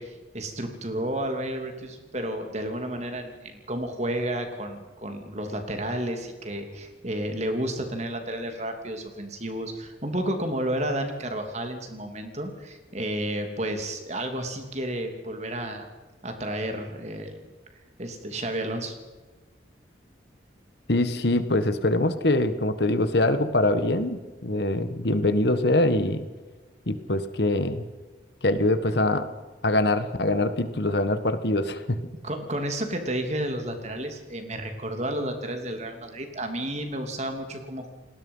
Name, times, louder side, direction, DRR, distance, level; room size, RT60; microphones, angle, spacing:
voice 1, 0.0-15.9 16.2-17.4 18.0-18.9 32.2-37.9, right 1 dB, 35° right, 5 dB, 3.0 m, -31 dB
voice 2, 20.9-26.2 26.9-27.9 28.4-29.3 29.6-32.0, left 1 dB, 60° left, 10 dB, 1.6 m, -23 dB
29.0 x 19.0 x 5.7 m, 1.2 s
head